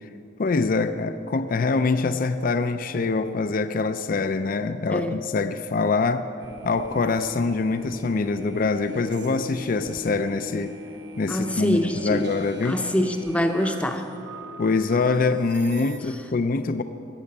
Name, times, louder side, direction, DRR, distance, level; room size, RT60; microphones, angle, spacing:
voice 1, 0.4-6.3 6.6-10.7 11.2-12.8 14.6-16.8, left 4 dB, 45° left, 10 dB, 0.4 m, -24 dB
sound 1, 6.4-16.0, equal, 60° right, 1.1 m, -41 dB
voice 2, 11.3-12.3 12.6-14.1, equal, 5° left, 5 dB, 0.7 m, -25 dB
15.0 x 6.3 x 8.4 m, 2.6 s
head